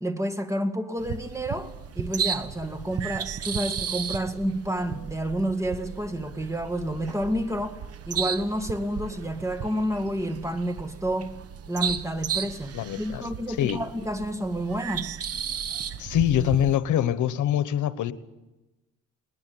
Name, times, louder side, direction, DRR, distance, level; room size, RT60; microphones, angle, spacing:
voice 1, 0.0-7.8 8.1-11.4 11.7-15.1, equal, 10° right, 2.1 m, -29 dB
sound 1, 1.0-16.8, right 8 dB, 50° right, 1.2 m, -34 dB
voice 2, 12.7-13.8 16.0-18.1, left 11 dB, 75° left, 1.2 m, -24 dB
21.0 x 19.0 x 8.5 m
cardioid pair, 90°, 30 cm